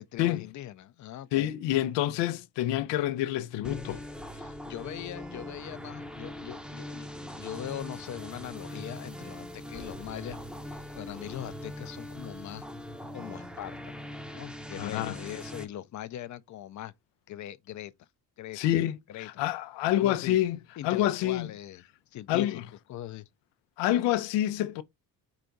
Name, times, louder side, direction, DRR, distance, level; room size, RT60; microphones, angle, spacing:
voice 1, 0.0-1.6 4.3-10.4 11.0-12.6 13.1-13.9 14.3-16.9 17.3-18.1 18.4-18.6 19.1-19.4 20.0-20.4 20.8-21.8 22.1-22.6 22.9-23.3, left 12 dB, 45° left, 0.5 m, -41 dB
voice 2, 1.3-4.0 14.8-15.2 18.5-20.6 20.8-21.5 22.3-22.6 23.8-24.8, left 13 dB, 90° left, 0.6 m, -27 dB
sound 1, 3.6-15.6, left 1 dB, ahead, 0.6 m, -41 dB
4.9 x 2.2 x 3.8 m
cardioid pair, 110°, 41 cm